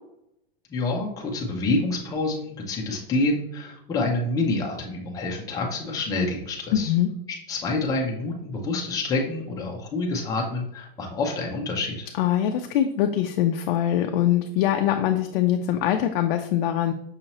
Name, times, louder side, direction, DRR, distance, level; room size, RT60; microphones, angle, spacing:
voice 1, 0.7-6.9 7.5-12.1, left 2 dB, 10° left, 0 dB, 0.5 m, -27 dB
voice 2, 6.7-7.1 12.2-16.9, left 11 dB, 60° left, 4 dB, 0.4 m, -23 dB
5.6 x 2.7 x 2.9 m, 0.78 s
supercardioid pair, 150°, 29 cm